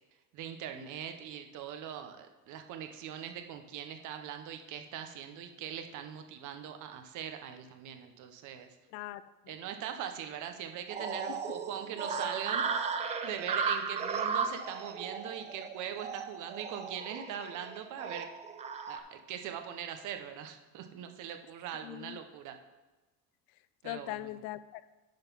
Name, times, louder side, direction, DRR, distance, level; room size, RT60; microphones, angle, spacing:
voice 1, 0.3-8.7 9.5-12.9 13.2-18.3 18.9-22.5 23.8-24.3, right 9 dB, 50° right, 6 dB, 0.9 m, -41 dB
voice 2, 8.9-9.5 11.3-11.4 21.8-22.2 23.8-24.8, left 15 dB, 60° left, 15 dB, 0.5 m, -41 dB
sound 1, 10.9-19.0, right 5 dB, 20° right, 0.3 m, -35 dB
10.5 x 4.0 x 5.3 m, 1.1 s
cardioid pair, 150°, 39 cm